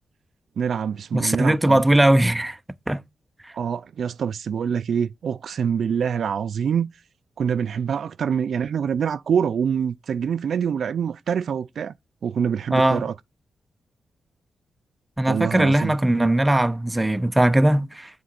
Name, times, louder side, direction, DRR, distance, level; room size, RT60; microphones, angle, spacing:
voice 1, 0.6-1.8 3.5-6.9 7.4-11.9 12.2-13.1 15.3-15.9, right 7 dB, 70° right, 0.4 m, -25 dB
voice 2, 1.1-2.6 2.9-3.0 12.7-13.0 15.2-18.1, right 1 dB, 10° right, 0.5 m, -19 dB
7.6 x 3.1 x 5.8 m
wide cardioid pair, 110°, 0 cm